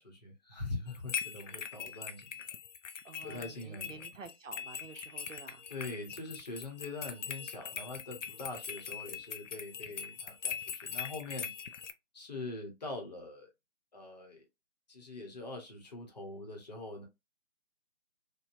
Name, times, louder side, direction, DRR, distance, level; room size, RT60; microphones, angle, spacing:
voice 1, 0.0-2.4 3.2-4.1 5.7-11.5 12.1-13.5 13.9-14.4 14.9-17.1, left 2 dB, 30° left, 1.0 m, -43 dB
sound 1, 0.9-11.9, left 7 dB, 70° left, 0.5 m, -42 dB
voice 2, 3.0-5.6, right 4 dB, 70° right, 0.7 m, -50 dB
3.0 x 2.2 x 2.5 m
figure-of-eight pair, 150°, 40 cm